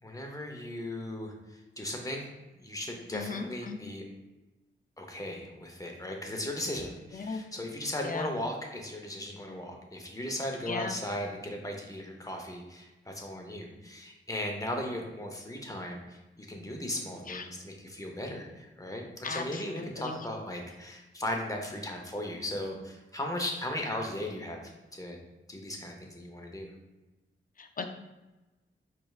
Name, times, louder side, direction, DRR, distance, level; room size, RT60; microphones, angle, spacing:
voice 1, 0.0-2.3 2.6-4.0 5.0-25.2 25.5-26.7, left 1 dB, 15° left, 1 dB, 0.8 m, -37 dB
voice 2, 3.1-3.9 7.1-7.4 8.0-8.3 10.7-11.0 17.3-17.5 19.2-20.3 27.6-27.8, left 4 dB, 40° left, 6 dB, 0.4 m, -37 dB
4.4 x 3.3 x 2.4 m, 1.1 s
cardioid pair, 70°, 21 cm